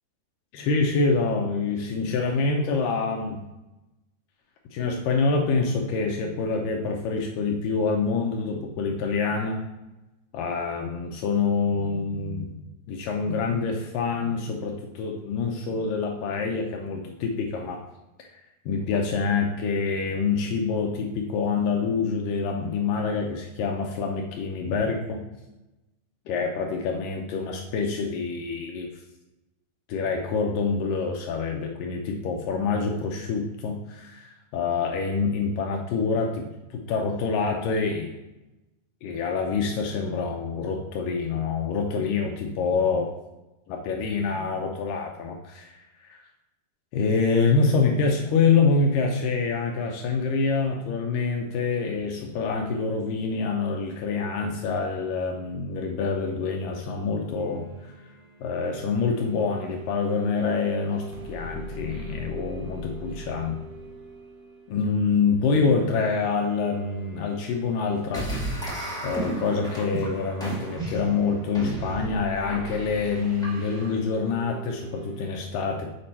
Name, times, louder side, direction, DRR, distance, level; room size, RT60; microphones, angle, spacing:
voice 1, 0.5-3.4 4.7-9.6 10.3-12.5 12.9-17.8 18.2-25.2 26.3-28.9 29.9-36.5 36.7-38.1 39.0-43.1 43.7-46.2 46.9-57.7 58.4-63.6 64.7-68.6 69.0-75.9, left 4 dB, 80° left, 1 dB, 2.0 m, -26 dB
sound 1, 57.4-75.3, right 1 dB, 85° right, 1.3 m, -44 dB
sound 2, 68.1-73.9, right 1 dB, 5° left, 0.7 m, -33 dB
8.2 x 5.2 x 4.3 m, 1.0 s
omnidirectional pair, 4.7 m